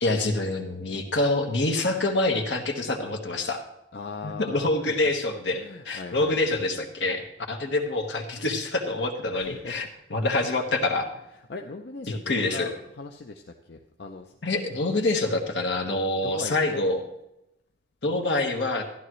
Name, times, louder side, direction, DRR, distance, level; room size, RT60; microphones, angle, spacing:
voice 1, 0.0-3.6 4.2-11.1 12.1-12.7 14.4-17.0 18.0-18.9, left 2 dB, 80° left, 4 dB, 1.5 m, -26 dB
voice 2, 3.9-4.9 5.5-6.6 9.3-9.9 11.5-14.4 16.2-16.9, left 3 dB, 65° left, 3 dB, 0.6 m, -39 dB
13.5 x 11.0 x 3.1 m, 0.85 s
head